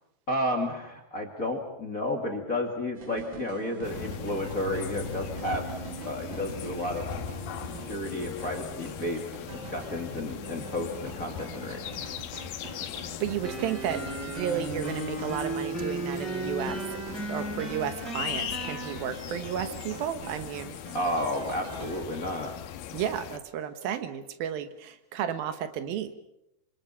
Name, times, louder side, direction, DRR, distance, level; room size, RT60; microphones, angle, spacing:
voice 1, 0.3-5.7 6.0-7.1 7.8-9.2 9.7-11.8 20.9-22.5, left 1 dB, 25° left, 2 dB, 2.1 m, -32 dB
sound 1, 2.9-22.1, right 6 dB, 60° right, 1.3 m, -45 dB
sound 2, 3.8-23.4, left 9 dB, 75° left, 2.8 m, -39 dB
voice 2, 13.2-14.0 14.3-16.8 17.3-20.7 22.9-26.1, right 9 dB, 75° right, 10 dB, 2.9 m, -32 dB
sound 3, 13.4-18.9, right 1 dB, ahead, 7.1 m, -35 dB
27.5 x 25.5 x 5.7 m, 0.83 s
omnidirectional pair, 4.4 m